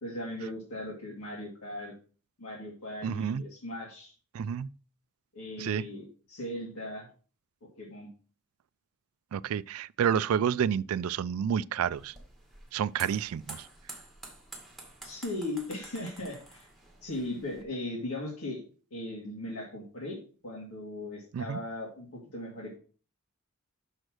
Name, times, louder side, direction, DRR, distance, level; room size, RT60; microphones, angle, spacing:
voice 1, 0.0-1.9 2.4-4.1 5.3-7.1 7.6-8.1 15.0-16.7 17.0-18.6 18.9-22.8, left 1 dB, 85° left, 2.4 m, -38 dB
voice 2, 3.0-3.4 4.3-4.7 5.6-5.9 9.3-12.1 12.7-13.7 21.3-21.6, right 8 dB, 75° right, 0.3 m, -29 dB
sound 1, 11.9-17.6, right 2 dB, ahead, 2.2 m, -49 dB
6.4 x 6.3 x 6.2 m
head